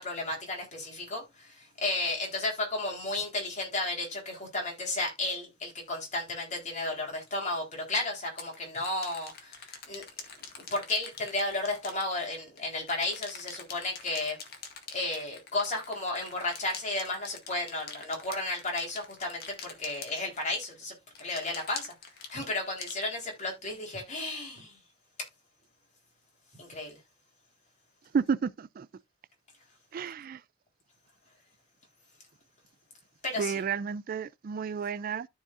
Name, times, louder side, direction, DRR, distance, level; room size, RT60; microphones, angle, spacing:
voice 1, 0.0-10.0 10.6-14.4 14.9-21.9 22.3-24.8 26.6-27.0 33.2-33.6, left 2 dB, 40° left, 4.0 m, -33 dB
sound 1, 7.3-7.4 8.2-12.6 12.9-20.7 21.2-23.6, left 6 dB, 55° left, 1.9 m, -45 dB
voice 2, 28.1-28.9 29.9-30.4 33.4-35.3, right 6 dB, 50° right, 0.4 m, -31 dB
13.5 x 4.9 x 2.5 m
head